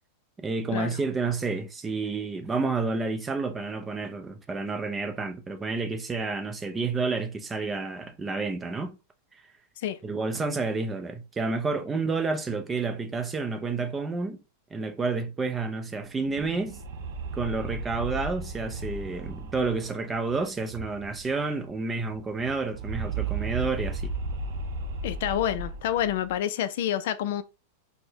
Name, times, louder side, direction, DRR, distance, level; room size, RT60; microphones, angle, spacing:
voice 1, 0.4-9.0 10.0-14.4 14.7-16.8 17.3-24.1, right 4 dB, 15° right, 0.4 m, -30 dB
sound 1, 16.1-21.4 21.7-21.8 22.0-26.4, right 3 dB, 65° right, 0.6 m, -35 dB
voice 2, 25.0-27.4, left 11 dB, 65° left, 0.4 m, -28 dB
4.4 x 2.1 x 2.8 m
supercardioid pair, 155°, 0 cm